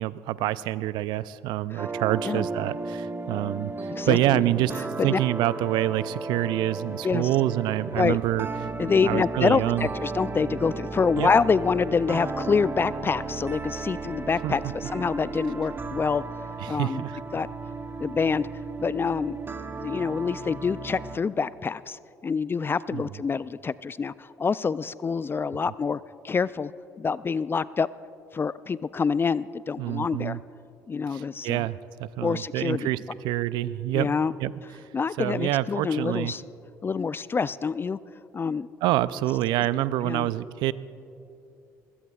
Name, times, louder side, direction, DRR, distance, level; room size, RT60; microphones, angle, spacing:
voice 1, 0.0-4.7 5.0-8.5 9.0-9.9 11.2-11.3 14.4-14.6 16.6-17.2 22.9-23.0 29.8-30.4 31.1-33.0 33.2-34.1 34.4-34.5 34.8-34.9 35.2-36.3 38.8-40.7, right 15 dB, 70° right, 17 dB, 0.4 m, -26 dB
sound 1, 1.8-21.2, right 3 dB, 30° right, 0.8 m, -35 dB
voice 2, 3.9-4.4 5.0-5.2 7.0-7.3 8.0-8.2 8.8-16.2 16.7-17.0 17.3-17.5 18.0-18.5 18.8-19.4 19.8-26.0 26.2-26.7 27.0-27.9 28.3-30.4 30.9-31.7 32.2-32.9 33.9-34.3 34.9-36.4 36.8-38.0 38.3-38.7 40.0-40.3, left 5 dB, 30° left, 18 dB, 0.3 m, -26 dB
22.5 x 16.0 x 2.4 m, 2.7 s
hypercardioid pair, 60°, 8 cm